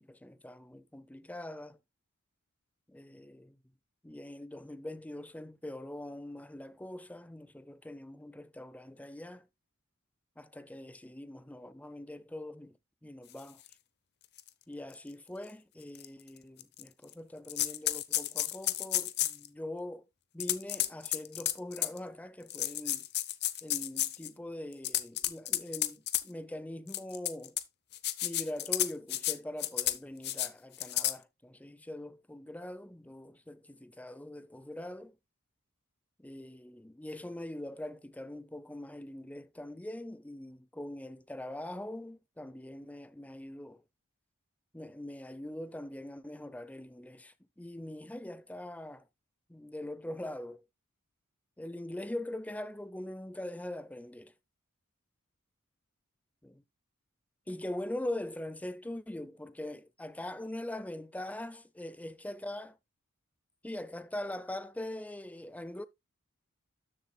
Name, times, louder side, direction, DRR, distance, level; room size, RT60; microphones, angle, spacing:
voice 1, 0.0-1.8 2.9-3.6 4.0-9.5 10.4-12.8 13.0-13.6 14.7-20.1 20.3-23.1 23.6-27.6 28.2-35.2 36.2-43.8 44.7-49.1 49.5-50.6 51.6-54.3 56.4-56.6 57.5-62.7 63.6-65.8, left 1 dB, 5° left, 0.5 m, -42 dB
sound 1, 13.7-13.8 14.4-14.5 14.9-15.0 15.9-16.1 16.6-17.1 17.5-19.5 20.4-22.0 22.5-24.3 24.7-26.2 26.9-27.6 27.9-29.3 29.6-30.0 30.2-30.5 30.8-31.1, left 14 dB, 50° left, 0.7 m, -31 dB
13.0 x 7.3 x 2.2 m
head